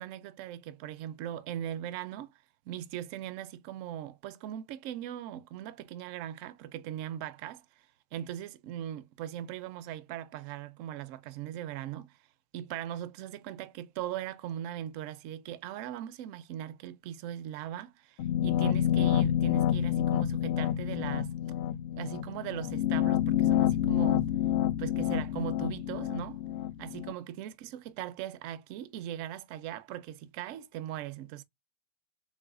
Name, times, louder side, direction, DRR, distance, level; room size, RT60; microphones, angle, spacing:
voice 1, 0.0-2.3 2.7-7.6 8.1-12.2 12.5-21.3 22.0-24.3 24.8-26.4 26.8-31.4, right 11 dB, 60° right, 0.4 m, -39 dB
sound 1, 18.2-27.1, left 11 dB, 65° left, 0.3 m, -28 dB
3.2 x 3.0 x 2.4 m
hypercardioid pair, 100°, 0 cm